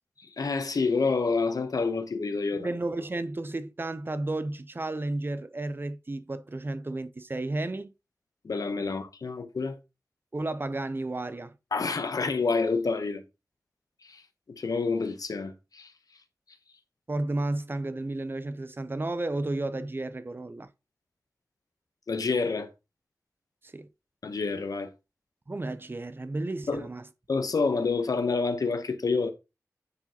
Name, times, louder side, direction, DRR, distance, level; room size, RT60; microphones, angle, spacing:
voice 1, 0.2-2.7 8.4-9.8 11.7-13.2 14.0-14.2 14.5-15.9 22.1-22.7 24.2-24.9 26.7-26.9 27.3-29.3, left 4 dB, 80° left, 0.8 m, -28 dB
voice 2, 2.5-7.9 10.3-11.5 17.1-20.7 23.6-23.9 25.5-27.1, right 2 dB, 35° right, 0.5 m, -32 dB
9.6 x 4.7 x 2.9 m
wide cardioid pair, 75°, 6 cm